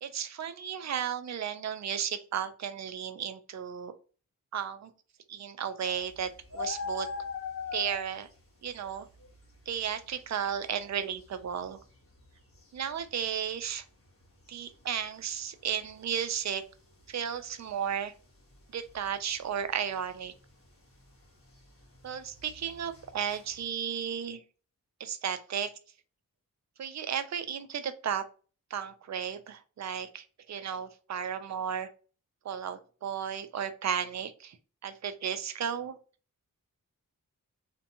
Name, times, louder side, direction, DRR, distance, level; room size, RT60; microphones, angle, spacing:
voice 1, 0.0-3.9 4.5-4.9 5.3-7.1 7.7-8.3 8.6-9.1 9.7-11.8 12.7-13.8 14.5-16.6 17.1-18.1 18.7-20.3 22.0-24.4 25.0-25.7 26.8-28.3 28.7-31.9 32.4-34.6 34.8-36.0, right 8 dB, 55° right, 10 dB, 0.4 m, -34 dB
sound 1, 5.9-23.7, left 5 dB, 40° left, 1.0 m, -45 dB
2.7 x 2.2 x 2.6 m, 0.37 s
wide cardioid pair, 80°, 34 cm